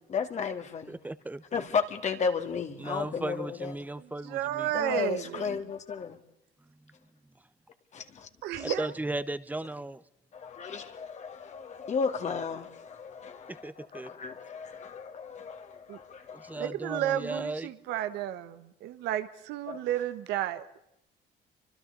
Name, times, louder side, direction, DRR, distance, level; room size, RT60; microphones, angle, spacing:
voice 1, 0.0-0.9 1.5-3.7 4.7-6.2 7.9-8.3 8.6-8.7 10.3-16.7 19.7-19.8, left 5 dB, 45° left, 2.3 m, -34 dB
voice 2, 0.9-1.4 2.8-4.7 8.6-10.0 13.6-14.1 16.3-17.7, right 2 dB, 10° right, 1.0 m, -36 dB
voice 3, 4.0-5.6 8.4-8.9 15.9-16.0 16.5-20.7, right 11 dB, 90° right, 1.4 m, -32 dB
29.5 x 25.5 x 4.1 m
cardioid pair, 110°, 17 cm